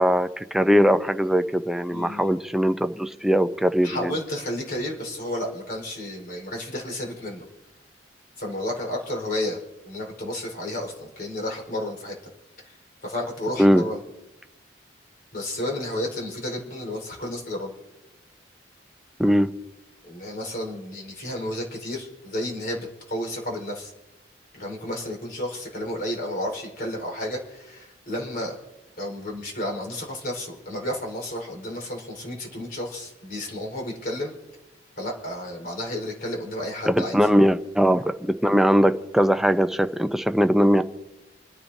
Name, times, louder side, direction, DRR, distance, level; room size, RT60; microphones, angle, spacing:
voice 1, 0.0-4.1 13.6-13.8 19.2-19.5 36.8-40.8, equal, ahead, 0.5 m, -20 dB
voice 2, 1.9-2.3 3.8-7.4 8.4-12.2 12.6-12.8 13.0-14.0 15.3-17.7 20.0-23.9 24.5-28.6 29.0-34.3 35.0-37.2, left 1 dB, 50° left, 4.4 m, -32 dB
30.0 x 10.0 x 2.7 m
head